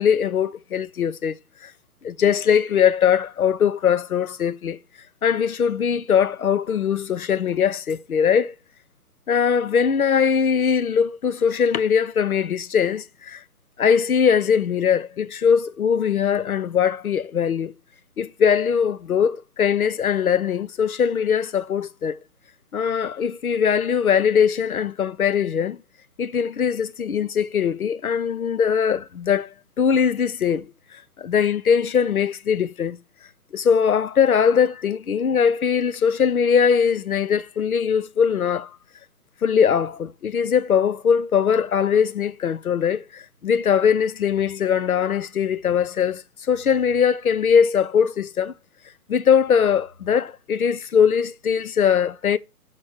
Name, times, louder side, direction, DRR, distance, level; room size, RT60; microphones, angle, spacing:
voice 1, 0.0-1.4 1.6-1.7 2.0-4.8 5.2-8.5 9.3-13.4 13.8-17.7 18.2-22.2 22.7-25.8 26.2-29.5 29.8-33.0 33.5-38.7 39.4-48.5 49.1-52.4, left 7 dB, 65° left, 0.8 m, -21 dB
7.3 x 4.3 x 6.6 m
figure-of-eight pair, 140°, 47 cm